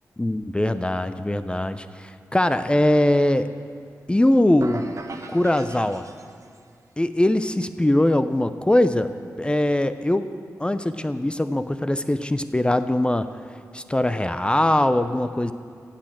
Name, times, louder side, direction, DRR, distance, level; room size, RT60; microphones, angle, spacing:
voice 1, 0.2-3.5 4.1-4.9 5.3-6.1 7.0-9.1 9.4-10.3 10.6-13.3 13.7-15.5, left 1 dB, 15° left, 11 dB, 0.6 m, -21 dB
sound 1, 4.6-6.7, right 3 dB, 55° right, 1.1 m, -39 dB
16.0 x 6.6 x 7.7 m, 2.2 s
cardioid pair, 50°, 7 cm